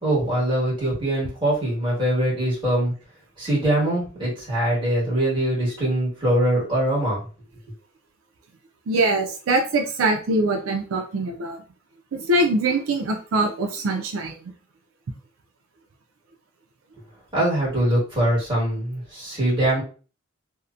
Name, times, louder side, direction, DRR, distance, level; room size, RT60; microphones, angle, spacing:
voice 1, 0.0-2.9 3.4-7.2 17.3-19.8, right 1 dB, 25° right, -6 dB, 1.4 m, -22 dB
voice 2, 8.9-11.6 12.1-14.4, right 2 dB, 85° right, 3 dB, 0.4 m, -23 dB
2.7 x 2.1 x 2.4 m, 0.37 s
head